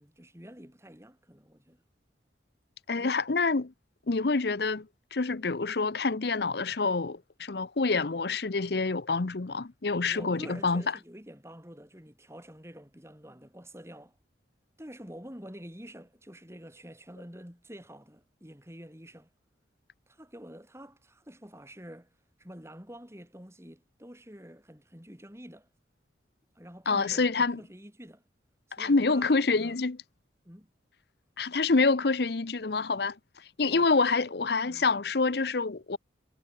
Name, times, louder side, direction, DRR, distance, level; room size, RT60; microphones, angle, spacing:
voice 1, 0.0-1.8 2.9-3.2 10.0-14.2 14.8-19.3 20.1-22.1 22.4-25.7 26.5-28.2 28.8-29.8 30.4-30.7 33.6-34.3 34.7-34.9, equal, 15° right, 6.3 m, -48 dB
voice 2, 2.9-3.7 4.1-10.8 26.9-27.6 28.8-30.0 31.4-36.0, left 4 dB, 55° left, 0.8 m, -27 dB
head